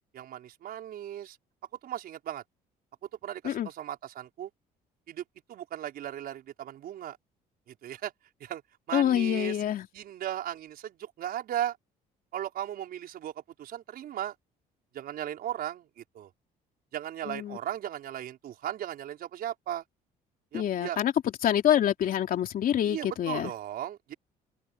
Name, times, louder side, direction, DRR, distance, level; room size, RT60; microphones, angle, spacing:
voice 1, 0.1-1.4 1.8-2.4 3.2-4.5 5.1-5.2 5.5-7.2 7.7-8.1 8.4-8.6 8.9-9.6 9.9-11.8 12.3-14.3 14.9-16.3 16.9-19.8 20.5-21.0 22.8-24.1, right 11 dB, 65° right, 5.0 m, -36 dB
voice 2, 8.9-9.9 17.3-17.6 20.5-21.1 21.4-23.5, left 10 dB, 60° left, 3.1 m, -26 dB
open air
cardioid pair, 110°, 17 cm